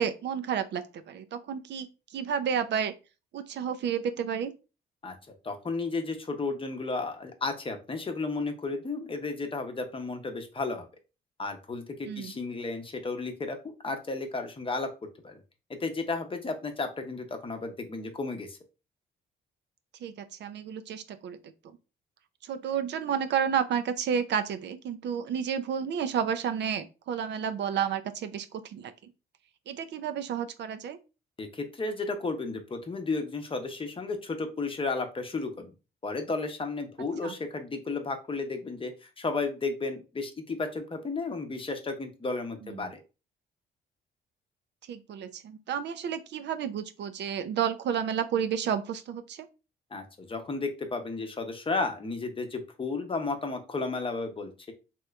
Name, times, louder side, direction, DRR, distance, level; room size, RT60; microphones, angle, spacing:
voice 1, 0.0-1.9 2.1-2.9 3.3-4.5 12.1-12.3 20.0-21.4 22.4-28.9 29.7-31.0 37.2-37.3 44.9-49.5, right 8 dB, 60° right, 10 dB, 0.4 m, -31 dB
voice 2, 5.4-10.9 11.4-13.6 13.8-14.9 15.2-15.3 15.8-18.6 31.4-35.7 36.0-43.0 49.9-54.7, left 3 dB, 25° left, 6 dB, 0.7 m, -33 dB
3.1 x 2.9 x 2.3 m, 0.30 s
cardioid pair, 90°, 20 cm